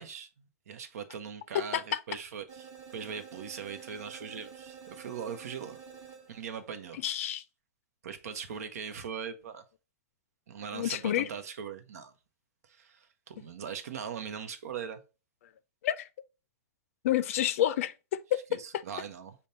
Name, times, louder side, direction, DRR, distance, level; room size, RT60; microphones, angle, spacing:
voice 1, 0.0-5.8 6.3-7.0 8.0-9.6 10.5-12.1 12.7-15.0 18.5-19.4, right 7 dB, 80° right, 0.7 m, -40 dB
voice 2, 1.5-2.0 7.0-7.4 10.7-11.3 15.8-16.1 17.0-18.4, left 12 dB, 65° left, 0.4 m, -29 dB
sound 1, 2.5-6.6, right 7 dB, 40° right, 1.3 m, -49 dB
5.2 x 2.2 x 4.1 m
supercardioid pair, 155°, 8 cm